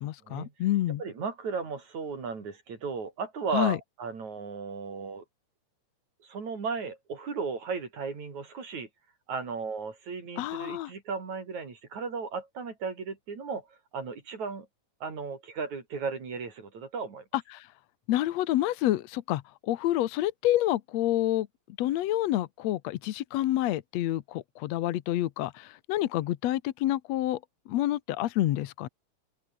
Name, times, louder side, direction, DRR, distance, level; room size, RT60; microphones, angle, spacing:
voice 1, 0.0-1.0 3.5-3.8 10.4-10.9 17.5-17.7 18.1-21.5 21.8-27.4 27.7-28.9, left 14 dB, 70° left, 1.9 m, -28 dB
voice 2, 1.0-5.2 6.2-8.9 9.3-14.7 15.0-17.2, right 5 dB, 65° right, 5.5 m, -35 dB
open air
omnidirectional pair, 3.6 m